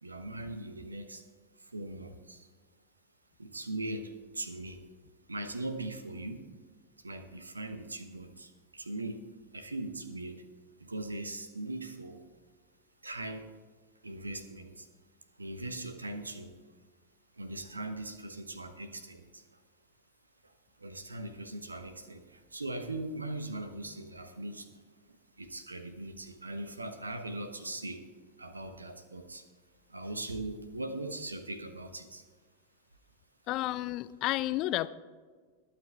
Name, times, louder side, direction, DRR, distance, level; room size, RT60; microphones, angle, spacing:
voice 1, 0.0-1.2 1.6-2.5 3.4-4.9 5.3-6.5 7.0-9.3 9.5-10.4 10.8-12.3 13.0-13.5 14.0-14.9 15.4-16.6 17.4-19.5 20.4-20.5 20.8-28.0 28.4-29.5 29.9-32.2, right 2 dB, 80° right, 9 dB, 1.2 m, -40 dB
voice 2, 33.5-34.9, left 16 dB, 40° left, 16 dB, 0.5 m, -31 dB
21.0 x 9.0 x 3.5 m, 1.5 s
figure-of-eight pair, 90°, 0 cm